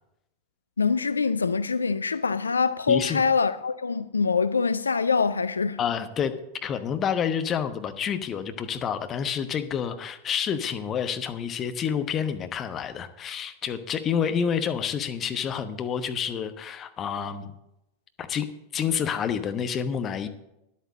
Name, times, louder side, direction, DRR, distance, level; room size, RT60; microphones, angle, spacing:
voice 1, 0.8-5.8, left 5 dB, 75° left, 0.3 m, -24 dB
voice 2, 2.9-3.2 5.8-6.3 6.6-17.5 18.2-18.5 18.7-20.3, left 7 dB, 30° left, 1.0 m, -28 dB
10.5 x 8.5 x 6.3 m
figure-of-eight pair, 90°, 0 cm